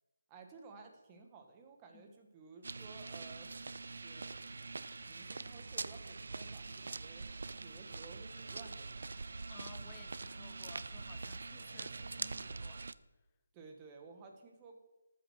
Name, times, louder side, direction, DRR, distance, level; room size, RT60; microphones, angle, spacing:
voice 1, 0.3-3.6 3.9-4.5 5.1-7.3 7.5-9.3 13.5-14.8, right 4 dB, 20° right, 3 dB, 1.5 m, -55 dB
sound 1, 2.6-12.9, right 3 dB, 65° right, 0.5 m, -44 dB
sound 2, 3.2-12.8, left 2 dB, 45° left, 1.8 m, -68 dB
voice 2, 9.5-13.3, left 10 dB, 15° left, 10 dB, 0.6 m, -59 dB
14.0 x 6.5 x 6.3 m, 1.1 s
figure-of-eight pair, 160°, 0 cm